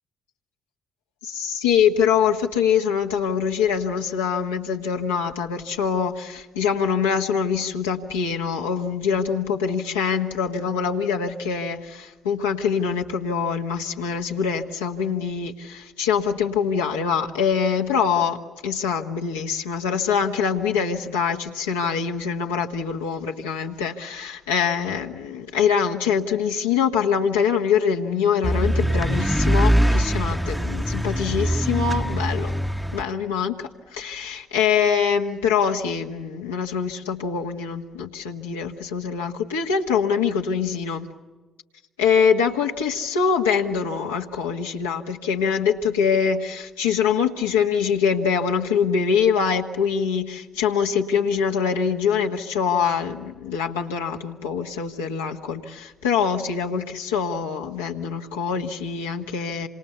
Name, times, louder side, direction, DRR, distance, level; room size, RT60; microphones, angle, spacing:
voice 1, 1.2-32.5 32.9-41.1 42.0-59.7, left 6 dB, 90° left, 0 dB, 1.7 m, -24 dB
sound 1, 28.4-33.0, equal, ahead, 1.0 m, -22 dB
27.5 x 27.0 x 6.9 m, 1.2 s
hypercardioid pair, 50°, 0 cm